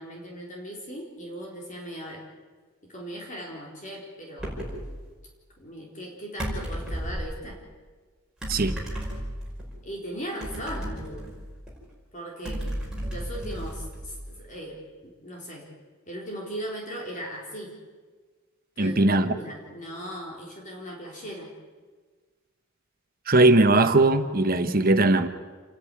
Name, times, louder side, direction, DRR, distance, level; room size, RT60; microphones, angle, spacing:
voice 1, 0.0-2.2 2.8-4.7 5.6-7.6 9.8-11.3 12.1-12.6 13.1-15.7 16.1-17.7 18.8-21.5, equal, 35° left, -2 dB, 4.0 m, -38 dB
sound 1, 4.4-4.9 6.4-7.3 8.4-9.7 10.4-11.8 12.4-14.4, equal, 5° right, 5.3 m, -33 dB
voice 2, 18.8-19.4 23.3-25.3, right 2 dB, 40° right, 9 dB, 1.1 m, -19 dB
28.5 x 10.5 x 9.7 m, 1.4 s
head